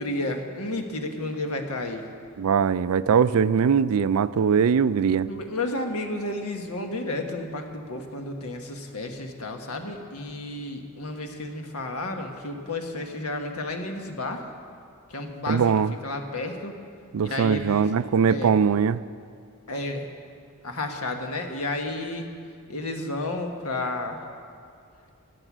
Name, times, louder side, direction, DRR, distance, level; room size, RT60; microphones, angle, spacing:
voice 1, 0.0-2.0 5.3-14.5 15.1-15.7 16.0-16.8 17.2-17.9 18.3-18.5 19.7-20.1 20.6-22.3 22.7-24.2, left 2 dB, 90° left, 4 dB, 1.5 m, -32 dB
voice 2, 2.4-5.3 15.5-15.9 17.1-19.0, right 6 dB, 75° right, 16 dB, 0.4 m, -21 dB
17.0 x 11.0 x 6.1 m, 2.3 s
head